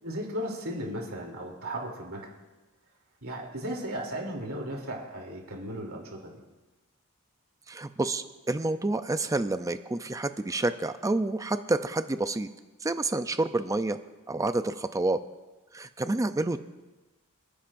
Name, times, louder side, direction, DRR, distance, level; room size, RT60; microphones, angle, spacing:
voice 1, 0.0-2.3 3.2-6.4, right 1 dB, 70° right, -1 dB, 3.1 m, -36 dB
voice 2, 7.7-12.5 12.8-14.0 14.3-15.2 15.7-16.6, right 2 dB, 15° right, 10 dB, 0.4 m, -28 dB
28.5 x 10.0 x 2.6 m, 1.2 s
head